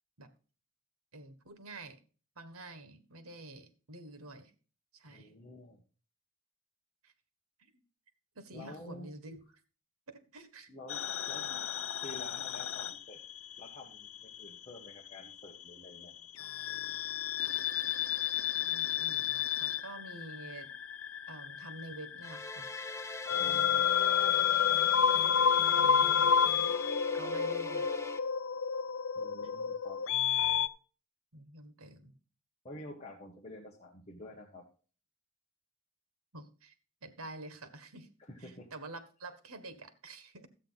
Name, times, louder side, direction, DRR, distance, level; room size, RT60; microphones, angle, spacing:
voice 1, 1.1-2.0 2.3-4.5 4.9-5.3 7.0-7.1 7.6-7.7 8.3-9.4 10.1-10.7 18.5-20.7 21.3-22.7 23.0-23.2 23.5-23.8 25.6-26.4 27.1-27.9 29.4-29.5 31.3-32.2 36.3-36.7 37.0-38.1 38.4-40.5, right 2 dB, 90° right, 10 dB, 1.6 m, -48 dB
voice 2, 5.1-5.8 8.5-9.1 10.7-11.7 12.0-13.2 13.6-16.1 23.3-24.4 29.1-30.0 32.6-34.6 38.3-38.7, left 1 dB, 30° left, -2 dB, 1.5 m, -49 dB
sound 1, 10.9-13.7 14.0-15.2 16.4-30.7, left 8 dB, 65° left, 0.6 m, -30 dB
sound 2, 22.2-28.2, left 2 dB, 15° left, 0.5 m, -43 dB
13.0 x 8.4 x 4.0 m, 0.38 s
head